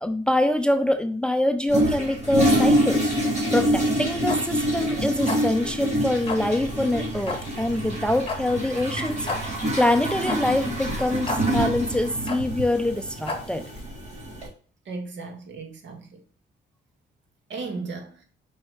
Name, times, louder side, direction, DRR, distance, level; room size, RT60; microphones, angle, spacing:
voice 1, 0.0-3.0 3.5-13.6, left 1 dB, 5° left, 0.5 m, -25 dB
Toilet flush, 1.7-14.5, equal, 35° right, 3.4 m, -26 dB
sound 1, 3.8-13.8, left 3 dB, 25° left, 1.5 m, -35 dB
voice 2, 14.9-16.2 17.5-18.2, right 4 dB, 65° right, 1.8 m, -36 dB
5.6 x 4.1 x 4.9 m
cardioid pair, 90°, 20 cm